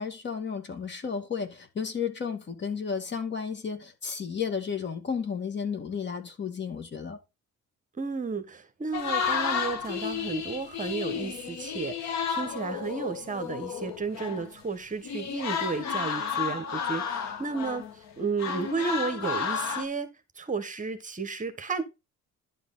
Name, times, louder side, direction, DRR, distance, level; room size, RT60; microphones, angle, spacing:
voice 1, 0.0-7.2, left 6 dB, 40° left, 2.3 m, -33 dB
voice 2, 8.0-20.1 20.4-21.8, right 4 dB, 25° right, 1.5 m, -33 dB
sound 1, 8.9-14.5 15.0-18.1 18.4-19.8, left 6 dB, 65° left, 2.0 m, -32 dB
11.0 x 5.1 x 3.9 m
cardioid pair, 120°, 29 cm